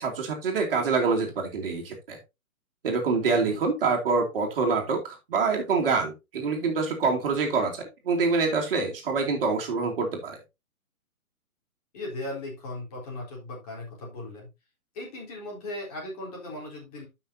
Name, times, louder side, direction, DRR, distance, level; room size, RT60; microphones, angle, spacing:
voice 1, 0.0-2.2 2.8-10.4, right 4 dB, 40° right, 0 dB, 2.6 m, -26 dB
voice 2, 11.9-14.5 14.9-17.1, left 1 dB, 25° left, -2 dB, 3.8 m, -37 dB
13.5 x 5.9 x 2.8 m, 0.24 s
hypercardioid pair, 170°, 43 cm